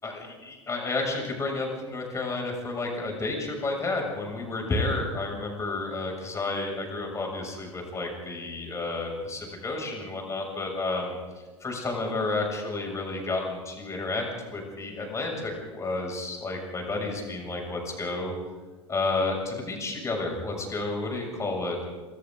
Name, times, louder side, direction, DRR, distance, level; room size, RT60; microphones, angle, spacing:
voice 1, 0.0-11.2 11.6-14.2 14.5-18.3 18.9-21.9, left 3 dB, 20° left, 1 dB, 7.2 m, -31 dB
26.0 x 26.0 x 4.0 m, 1.3 s
figure-of-eight pair, 80°, 15 cm